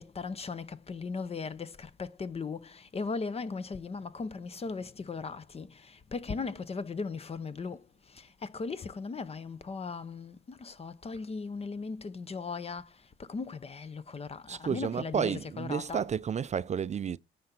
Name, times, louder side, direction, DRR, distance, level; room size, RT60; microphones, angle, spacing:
voice 1, 0.0-7.8 8.1-12.9 13.2-16.0, left 4 dB, 30° left, 0.7 m, -38 dB
voice 2, 14.5-17.2, right 7 dB, 35° right, 0.4 m, -31 dB
9.5 x 3.9 x 5.9 m
cardioid pair, 90°, 20 cm